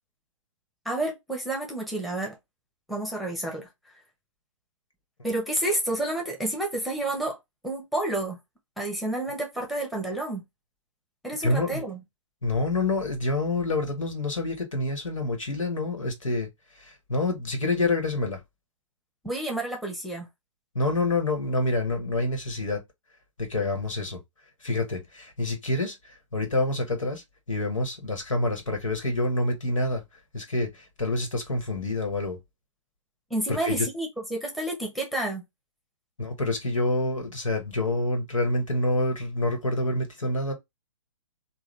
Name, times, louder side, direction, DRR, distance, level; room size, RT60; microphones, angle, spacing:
voice 1, 0.8-2.4 2.9-3.7 5.2-7.4 7.6-8.4 8.8-10.4 11.2-12.0 19.2-20.3 33.3-35.4, right 1 dB, ahead, 1.0 m, -30 dB
voice 2, 11.4-11.8 12.4-16.5 16.7-18.4 20.7-22.8 23.4-24.2 24.6-30.0 30.3-32.4 33.5-33.9 36.2-40.5, left 2 dB, 85° left, 1.5 m, -27 dB
3.7 x 2.5 x 3.2 m
hypercardioid pair, 130°, 16 cm